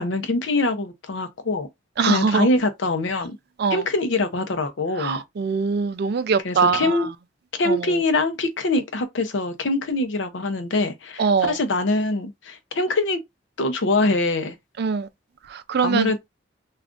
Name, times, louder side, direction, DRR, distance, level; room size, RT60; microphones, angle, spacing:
voice 1, 0.0-1.7 2.0-3.4 3.7-5.2 6.4-7.1 7.6-13.2 13.6-14.5 15.8-16.2, left 2 dB, 70° left, 0.6 m, -23 dB
voice 2, 2.0-2.5 3.6-3.9 5.0-7.1 7.6-8.0 11.2-11.6 14.8-15.1 15.5-16.1, right 5 dB, 55° right, 0.4 m, -23 dB
3.6 x 2.4 x 2.4 m
head